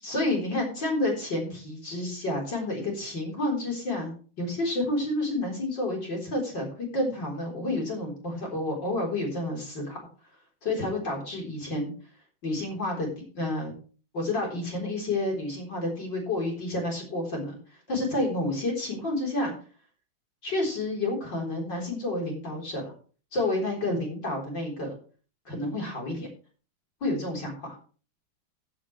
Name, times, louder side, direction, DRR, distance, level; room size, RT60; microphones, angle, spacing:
voice 1, 0.0-6.7 6.9-10.1 10.6-11.9 12.4-13.1 13.3-13.7 14.1-17.6 17.9-19.5 20.4-22.9 23.3-24.9 25.5-26.3 27.0-27.7, left 2 dB, 25° left, -1 dB, 4.3 m, -30 dB
15.0 x 9.2 x 3.3 m, 0.39 s
omnidirectional pair, 4.7 m